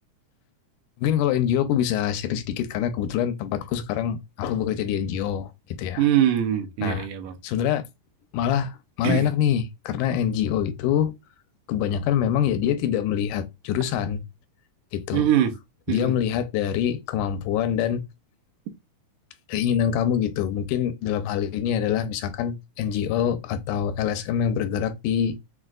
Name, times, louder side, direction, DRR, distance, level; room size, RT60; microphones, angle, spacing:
voice 1, 1.0-6.0 6.8-7.1 7.4-7.9 8.3-11.1 11.7-14.2 14.9-15.2 15.9-18.0 19.5-25.5, left 9 dB, 85° left, 2.1 m, -25 dB
voice 2, 6.0-7.4 9.0-9.3 15.1-15.6 15.9-16.1, right 10 dB, 80° right, 2.0 m, -22 dB
6.0 x 2.3 x 2.4 m
omnidirectional pair, 3.7 m